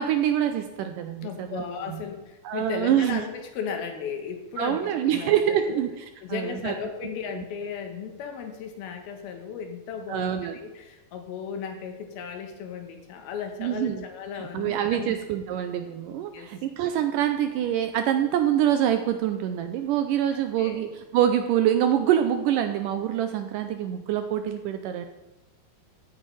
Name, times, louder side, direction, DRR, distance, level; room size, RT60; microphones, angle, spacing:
voice 1, 0.0-2.0 2.4-3.2 4.6-6.7 7.3-7.4 10.1-10.6 13.6-14.1 14.4-25.1, right 10 dB, 80° right, 7 dB, 2.0 m, -25 dB
voice 2, 1.2-5.8 6.2-15.1 16.3-16.5 20.6-20.8, left 6 dB, 85° left, 5 dB, 3.1 m, -36 dB
14.5 x 9.1 x 3.3 m, 1.1 s
omnidirectional pair, 4.2 m